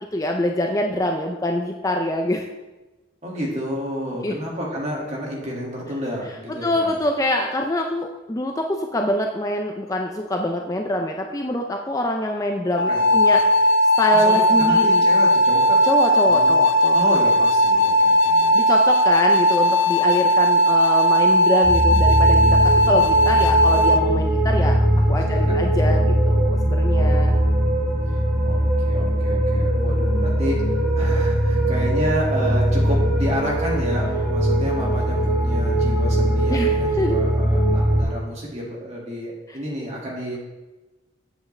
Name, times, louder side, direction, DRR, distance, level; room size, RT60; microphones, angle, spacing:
voice 1, 0.1-2.5 4.2-4.4 6.5-15.1 15.8-17.0 18.5-27.4 36.5-37.2 39.5-39.6, left 1 dB, 15° left, 2 dB, 0.4 m, -25 dB
voice 2, 3.2-6.9 12.9-13.4 14.1-15.8 16.2-16.5 16.9-18.7 25.3-25.7 28.4-28.6 28.8-30.6 31.0-40.4, equal, 35° right, -3 dB, 2.0 m, -30 dB
sound 1, 12.8-24.0, equal, 75° left, 0.5 m, -17 dB
sound 2, 21.6-38.0, right 1 dB, 10° right, 1.8 m, -20 dB
8.0 x 8.0 x 3.2 m, 1.1 s
head